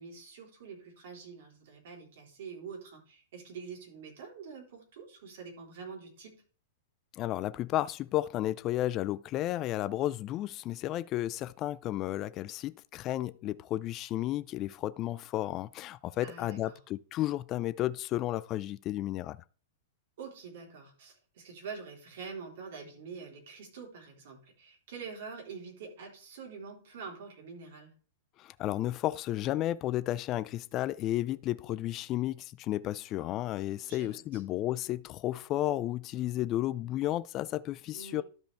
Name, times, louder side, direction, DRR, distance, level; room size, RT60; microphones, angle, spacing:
voice 1, 0.0-6.4 16.2-16.8 20.2-27.9 33.9-34.4 37.9-38.2, right 5 dB, 65° right, 3.6 m, -46 dB
voice 2, 7.1-19.4 28.4-38.2, left 14 dB, 35° left, 0.4 m, -33 dB
12.5 x 5.2 x 3.4 m
hypercardioid pair, 115°, 0 cm